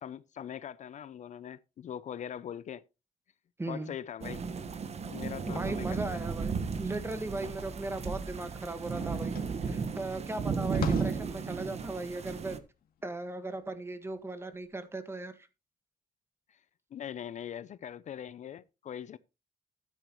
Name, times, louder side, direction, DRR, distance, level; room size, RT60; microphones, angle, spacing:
voice 1, 0.0-2.8 3.7-4.4 5.0-6.2 16.5-16.6 16.9-19.2, left 9 dB, 55° left, 0.5 m, -41 dB
voice 2, 3.6-3.9 5.5-9.4 9.6-12.6 13.0-15.3, right 2 dB, 15° right, 1.5 m, -37 dB
sound 1, 4.2-12.6, right 5 dB, 45° right, 1.3 m, -34 dB
sound 2, 8.6-14.7, left 7 dB, 80° left, 1.9 m, -44 dB
13.0 x 9.2 x 3.0 m
cardioid pair, 125°, 15 cm